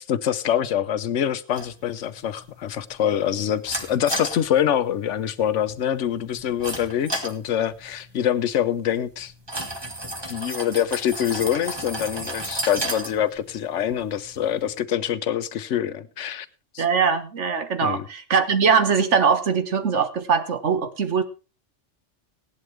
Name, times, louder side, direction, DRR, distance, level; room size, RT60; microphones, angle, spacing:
voice 1, 0.0-9.3 10.3-16.5 16.7-16.8 17.8-18.1, left 10 dB, 75° left, 1.1 m, -25 dB
sound 1, 1.5-14.8, right 1 dB, 20° right, 1.6 m, -35 dB
voice 2, 16.8-21.2, right 6 dB, 70° right, 1.6 m, -21 dB
16.5 x 11.5 x 3.2 m
omnidirectional pair, 1.3 m